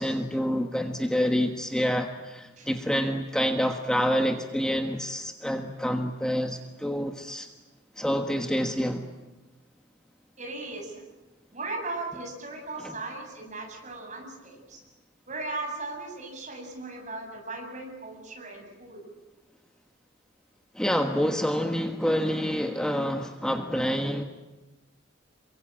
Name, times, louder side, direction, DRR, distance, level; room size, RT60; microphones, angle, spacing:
voice 1, 0.0-7.5 8.0-9.1 12.8-12.9 20.7-24.2, equal, 5° left, 4 dB, 1.3 m, -27 dB
voice 2, 10.4-11.0 11.5-14.8 15.3-19.0, right 3 dB, 40° right, 2 dB, 7.9 m, -37 dB
28.5 x 23.5 x 8.9 m, 1.1 s
head